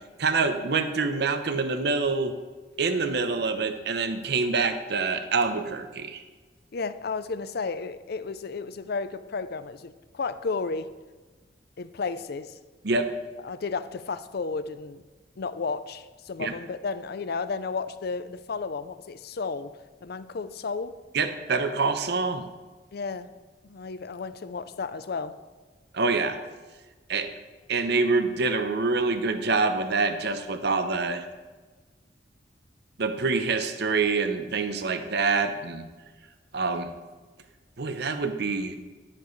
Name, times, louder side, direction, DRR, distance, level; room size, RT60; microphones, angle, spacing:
voice 1, 0.2-2.3 2.8-6.2 12.8-13.1 16.4-16.5 21.1-22.5 25.9-26.4 27.1-27.3 27.7-31.2 33.0-35.9 36.5-36.9 37.8-38.8, right 4 dB, 65° right, 9 dB, 0.7 m, -26 dB
voice 2, 6.7-10.9 11.8-12.5 13.4-15.0 15.4-20.9 22.9-23.3 23.6-25.4, left 4 dB, 60° left, 13 dB, 0.5 m, -33 dB
11.5 x 9.8 x 3.2 m, 1.3 s
head